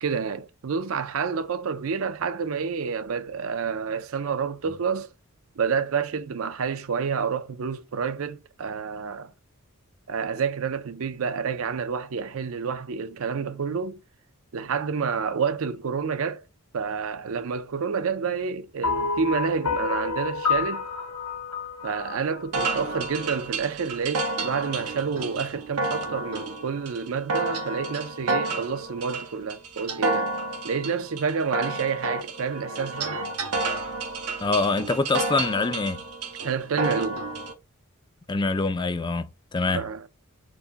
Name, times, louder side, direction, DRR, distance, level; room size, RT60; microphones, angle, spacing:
voice 1, 0.0-5.1 5.6-9.3 10.1-14.0 14.5-16.4 16.7-20.9 21.8-30.3 30.6-33.2 36.4-37.2 39.7-40.1, right 6 dB, 65° right, 0.5 m, -29 dB
sound 1, 18.8-23.2, left 5 dB, 80° left, 1.7 m, -29 dB
sound 2, 22.5-37.5, right 3 dB, 90° right, 1.2 m, -30 dB
voice 2, 34.4-36.0 38.3-39.8, left 3 dB, 20° left, 0.3 m, -25 dB
4.7 x 2.1 x 3.9 m
head